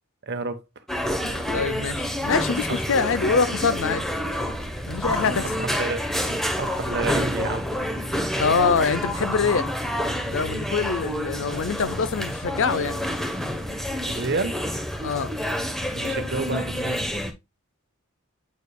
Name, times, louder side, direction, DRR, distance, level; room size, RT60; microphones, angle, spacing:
voice 1, 0.2-0.6 5.1-5.3 5.6-6.0 6.6-7.7 14.1-14.6 15.9-17.1, right 3 dB, 55° right, 1.0 m, -29 dB
sound 1, 0.9-17.3, equal, ahead, 0.9 m, -28 dB
voice 2, 1.5-4.1 4.9-5.5 8.0-9.7 10.3-13.0 15.0-15.3, left 5 dB, 65° left, 0.6 m, -24 dB
8.3 x 5.1 x 2.2 m
head